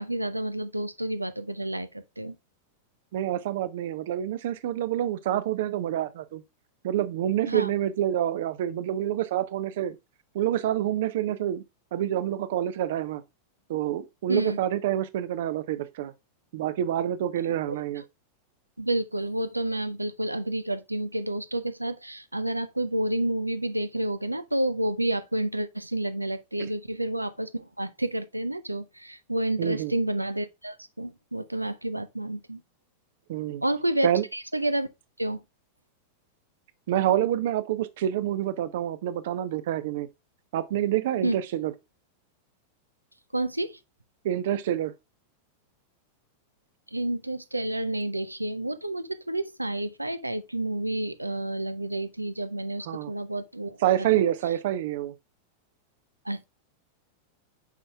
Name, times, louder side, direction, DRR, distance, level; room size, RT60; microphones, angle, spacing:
voice 1, 0.0-2.4 7.5-7.7 14.3-14.6 18.8-32.6 33.6-34.9 35.2-35.4 41.2-41.4 43.3-43.8 46.9-53.8 54.2-54.3 56.2-56.4, right 1 dB, 85° right, 0.6 m, -30 dB
voice 2, 3.1-6.4 6.8-10.0 10.3-11.6 11.9-13.2 13.7-16.1 16.5-18.0 26.6-26.7 29.6-29.9 33.3-33.6 34.0-34.2 36.9-40.1 40.5-41.7 44.2-44.9 52.9-53.1 53.8-55.1, right 11 dB, 55° right, 0.7 m, -27 dB
8.3 x 5.5 x 2.3 m
figure-of-eight pair, 90°, 0 cm